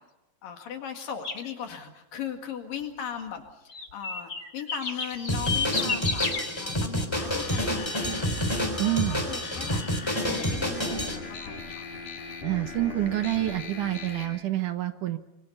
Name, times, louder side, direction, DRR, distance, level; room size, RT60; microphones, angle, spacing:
voice 1, 0.4-6.3 6.6-8.5 8.8-9.8 10.2-11.9, left 8 dB, 65° left, 5 dB, 3.6 m, -38 dB
sound 1, 1.2-1.5 3.7-6.4, left 4 dB, 25° left, 2.9 m, -30 dB
Drum kit, 5.3-11.2, equal, 5° left, 3.0 m, -29 dB
sound 2, 7.1-14.3, left 3 dB, 85° left, 7.5 m, -39 dB
voice 2, 8.8-9.2 12.4-15.2, right 14 dB, 65° right, 9 dB, 2.2 m, -27 dB
26.0 x 25.0 x 5.7 m, 0.98 s
omnidirectional pair, 4.6 m